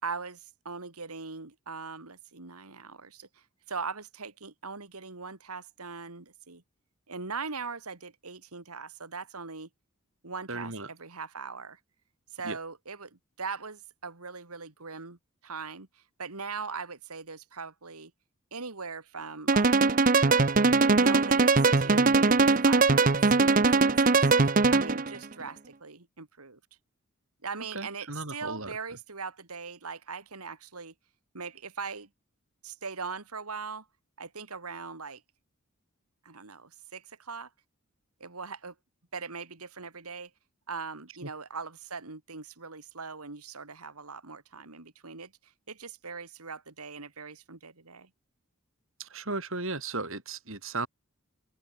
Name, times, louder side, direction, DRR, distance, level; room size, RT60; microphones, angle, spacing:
voice 1, 0.0-6.6 7.1-9.7 10.2-11.8 12.3-13.1 13.4-18.1 18.5-19.8 20.8-26.6 27.4-30.9 31.3-32.1 32.6-33.9 34.2-35.2 36.2-37.5 38.2-38.7 39.1-40.3 40.7-48.1, right 4 dB, 90° right, 2.5 m, -40 dB
voice 2, 10.5-10.9 12.4-12.6 27.7-28.8 41.2-41.3 49.0-50.9, right 3 dB, 65° right, 5.6 m, -35 dB
sound 1, 19.5-25.1, right 3 dB, 40° right, 0.9 m, -21 dB
open air
head